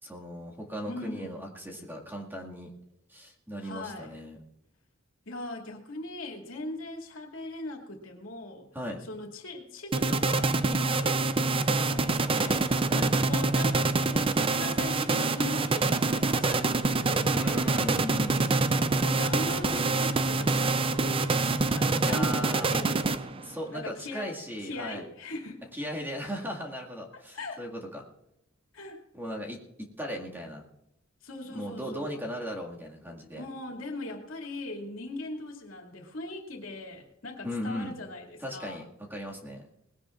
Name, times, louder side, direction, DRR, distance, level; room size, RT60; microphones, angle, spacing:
voice 1, 0.0-2.7 3.1-4.4 8.7-9.0 12.9-13.2 17.3-18.8 22.0-22.7 23.4-25.0 25.7-28.1 29.1-30.6 31.5-33.4 37.4-37.9 38.4-39.7, equal, 10° right, -2 dB, 2.1 m, -37 dB
voice 2, 0.8-1.3 3.6-4.1 5.3-8.7 9.0-12.7 13.3-17.8 19.0-23.4 23.7-24.3 24.6-25.6 27.1-27.6 28.7-29.0 31.2-32.2 33.3-38.8, left 2 dB, 80° left, 2 dB, 2.6 m, -40 dB
sound 1, 9.9-23.5, right 3 dB, 25° right, 0.5 m, -26 dB
20.5 x 16.5 x 2.5 m, 0.87 s
head